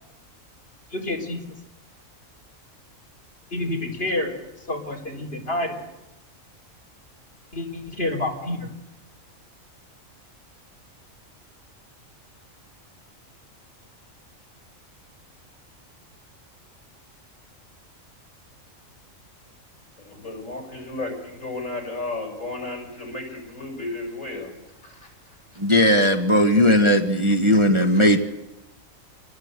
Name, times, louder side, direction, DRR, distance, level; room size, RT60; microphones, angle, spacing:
voice 1, 0.9-1.4 3.5-4.3 4.7-5.8 7.5-8.7, left 1 dB, 45° left, 0 dB, 4.6 m, -28 dB
voice 2, 20.1-24.5 24.8-25.0, left 2 dB, 70° left, 1 dB, 7.2 m, -33 dB
voice 3, 25.6-28.2, equal, 20° right, 4 dB, 1.5 m, -17 dB
27.0 x 20.0 x 8.3 m, 0.94 s
omnidirectional pair, 1.4 m